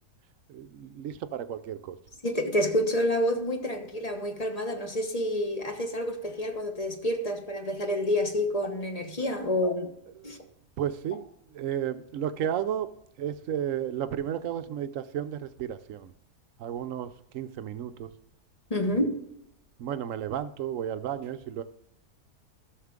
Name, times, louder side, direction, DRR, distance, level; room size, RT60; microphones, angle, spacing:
voice 1, 0.5-2.0 10.2-12.9 13.2-16.1 16.6-18.1 19.8-21.6, right 10 dB, 65° right, 0.9 m, -33 dB
voice 2, 2.2-9.9 10.2-10.4 18.7-19.2, left 1 dB, 25° left, 1.0 m, -28 dB
13.0 x 6.6 x 3.6 m
omnidirectional pair, 1.7 m